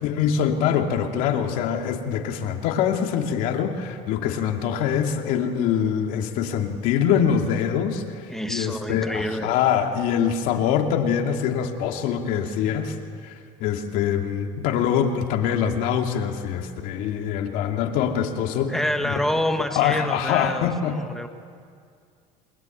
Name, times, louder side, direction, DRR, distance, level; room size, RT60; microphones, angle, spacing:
voice 1, 0.0-12.9 13.2-13.3 13.6-18.7 19.0-19.1 19.7-20.9, left 8 dB, 65° left, 3 dB, 2.6 m, -24 dB
voice 2, 8.3-9.6 18.7-21.3, left 1 dB, 5° left, 6 dB, 1.2 m, -27 dB
29.0 x 21.0 x 9.2 m, 2.3 s
cardioid pair, 145°, 15 cm